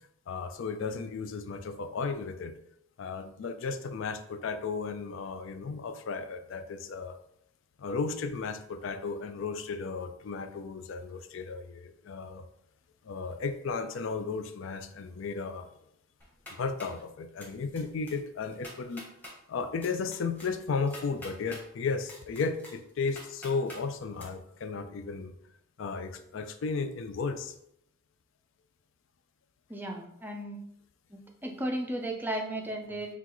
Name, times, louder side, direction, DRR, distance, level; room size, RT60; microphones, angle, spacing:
voice 1, 0.3-2.5 3.0-7.2 7.8-12.4 13.0-15.7 16.6-19.0 19.5-25.3 25.8-27.5, left 4 dB, 60° left, 9 dB, 0.4 m, -34 dB
sound 1, 16.2-17.0 17.4-17.8 18.1-18.2 18.5-19.3 19.8-21.6 22.0-23.8 24.2-24.3, left 1 dB, 10° left, 1.0 m, -46 dB
voice 2, 29.7-30.6 31.1-33.2, right 1 dB, 10° right, 2 dB, 0.4 m, -35 dB
5.9 x 2.4 x 3.0 m, 0.74 s
head